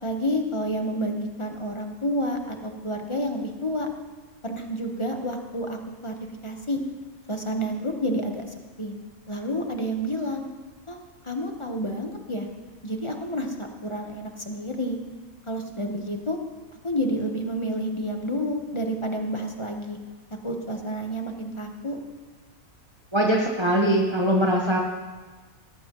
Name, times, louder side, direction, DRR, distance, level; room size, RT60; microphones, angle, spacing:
voice 1, 0.0-3.9 4.4-6.1 6.4-6.8 7.3-8.9 9.3-10.4 10.9-11.0 11.2-12.5 12.8-15.0 15.5-16.4 16.8-20.0 20.4-22.0, equal, 25° left, 3 dB, 1.1 m, -29 dB
voice 2, 23.1-24.8, right 1 dB, 20° right, -2 dB, 1.2 m, -21 dB
17.5 x 14.5 x 3.1 m, 1.3 s
omnidirectional pair, 1.5 m